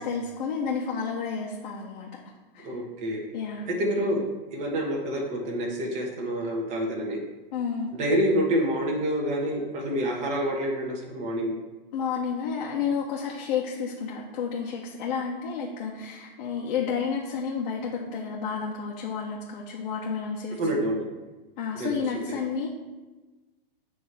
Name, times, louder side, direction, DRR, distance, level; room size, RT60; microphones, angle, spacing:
voice 1, 0.0-2.2 2.5-2.8 3.3-3.7 7.5-7.9 11.9-20.8 21.6-22.7, left 6 dB, 55° left, -3 dB, 1.2 m, -31 dB
voice 2, 2.6-3.2 3.7-4.2 4.5-7.2 7.9-11.6 20.6-21.0 21.8-21.9, equal, 25° right, 0 dB, 1.3 m, -27 dB
8.1 x 3.1 x 6.2 m, 1.2 s
hypercardioid pair, 155°, 29 cm